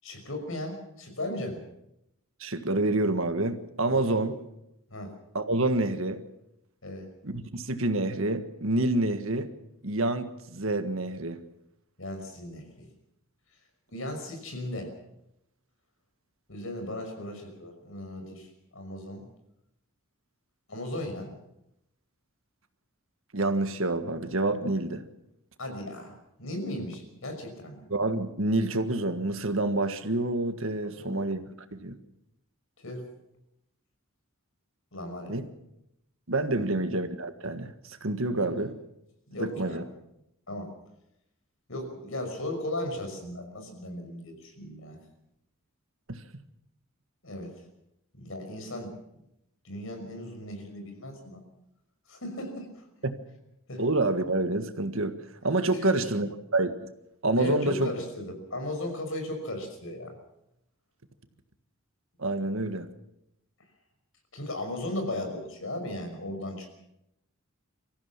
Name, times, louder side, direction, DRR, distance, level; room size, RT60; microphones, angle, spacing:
voice 1, 0.0-1.7 3.9-4.1 4.9-5.1 6.8-7.1 12.0-12.9 13.9-14.9 16.5-19.3 20.7-21.3 25.6-27.9 30.8-31.4 32.8-33.0 34.9-35.3 36.6-36.8 38.3-38.5 39.3-39.8 40.5-40.7 41.7-45.0 47.2-47.5 48.1-48.9 49.6-51.4 52.1-52.8 53.7-53.8 55.7-56.1 57.4-60.2 64.3-66.7, left 1 dB, 65° left, 5 dB, 5.8 m, -36 dB
voice 2, 2.4-4.3 5.3-6.2 7.2-9.5 9.8-11.4 23.3-25.0 27.9-31.4 31.7-31.9 35.3-35.4 36.3-38.7 39.4-39.8 46.1-46.2 53.0-53.2 53.8-55.1 55.4-56.9 57.2-57.9 62.2-62.9, right 2 dB, 65° right, 9 dB, 1.6 m, -27 dB
25.0 x 15.0 x 7.3 m, 0.83 s
head